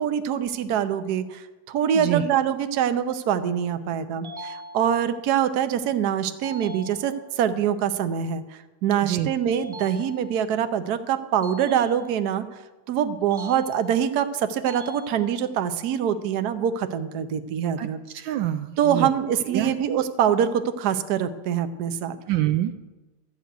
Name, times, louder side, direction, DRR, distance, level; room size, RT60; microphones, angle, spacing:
voice 1, 0.0-8.4 8.8-12.4 12.9-18.0 18.8-22.2, right 9 dB, 60° right, 10 dB, 1.2 m, -24 dB
sound 1, 4.2-5.3 6.4-7.4 9.5-10.5 11.4-12.5 13.3-14.2 14.7-15.7, equal, 15° right, 1.3 m, -41 dB
voice 2, 17.8-19.1 19.5-19.7 22.3-22.7, right 12 dB, 75° right, 8 dB, 1.3 m, -26 dB
12.5 x 6.3 x 9.2 m, 1.1 s
omnidirectional pair, 2.2 m